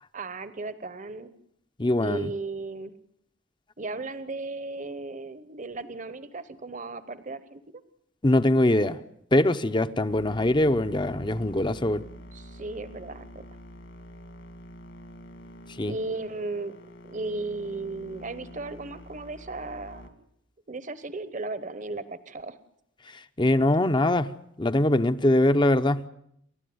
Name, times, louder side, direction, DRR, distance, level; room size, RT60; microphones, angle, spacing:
voice 1, 0.1-1.3 2.0-2.9 3.8-7.6 12.3-13.5 15.8-16.7 17.0-20.2 20.7-22.6, right 3 dB, 40° right, 1.0 m, -35 dB
voice 2, 1.8-2.3 8.2-9.0 9.3-12.1 15.8-15.9 23.4-24.3 24.6-26.0, left 1 dB, 25° left, 0.8 m, -22 dB
sound 1, 10.1-20.1, equal, 60° left, 2.5 m, -46 dB
29.5 x 12.5 x 9.5 m
head